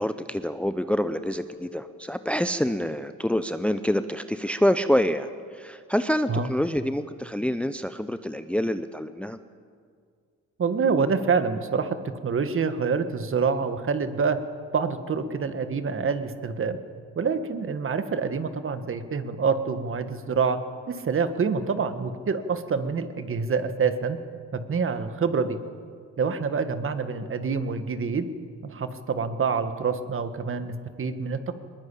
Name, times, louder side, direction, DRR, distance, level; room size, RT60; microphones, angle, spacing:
voice 1, 0.0-5.3 5.5-9.4, equal, 5° left, 11 dB, 0.7 m, -26 dB
Keyboard (musical), 1.2-4.4, left 5 dB, 25° left, 4.3 m, -51 dB
voice 2, 10.6-12.0 12.2-14.4 14.7-16.8 17.1-20.6 20.9-24.2 24.5-25.6 26.2-28.3 28.6-31.5, right 5 dB, 45° right, 10 dB, 1.7 m, -26 dB
21.5 x 20.0 x 8.5 m, 2.1 s
cardioid pair, 90°, 30 cm